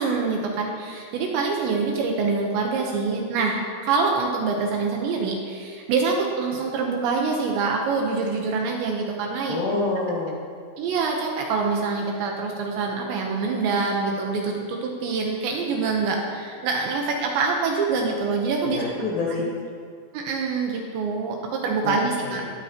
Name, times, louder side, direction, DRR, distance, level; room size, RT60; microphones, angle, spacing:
voice 1, 0.0-9.5 10.8-18.8 19.4-19.5 20.1-22.4, right 4 dB, 75° right, 0 dB, 2.9 m, -25 dB
voice 2, 9.5-10.4 18.6-19.5 21.8-22.5, left 3 dB, 65° left, -6 dB, 2.0 m, -27 dB
19.0 x 13.0 x 3.0 m, 2.1 s
omnidirectional pair, 5.9 m